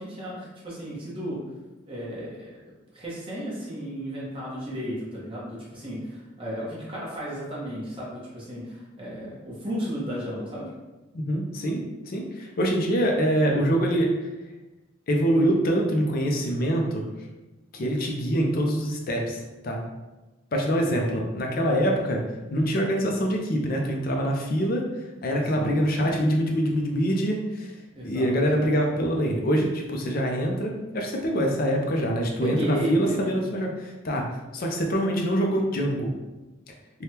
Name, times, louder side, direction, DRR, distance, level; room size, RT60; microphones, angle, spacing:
voice 1, 0.0-1.4 1.9-2.5 2.9-10.6 20.7-21.0 25.3-25.9 27.9-28.4 32.4-33.3, equal, 25° right, -6 dB, 1.0 m, -34 dB
voice 2, 11.1-14.1 15.1-17.1 17.7-19.8 20.5-22.2 22.5-24.8 25.2-27.7 28.0-34.3 34.5-36.1, equal, 50° left, 1 dB, 0.5 m, -25 dB
3.4 x 2.2 x 2.8 m, 1.1 s
head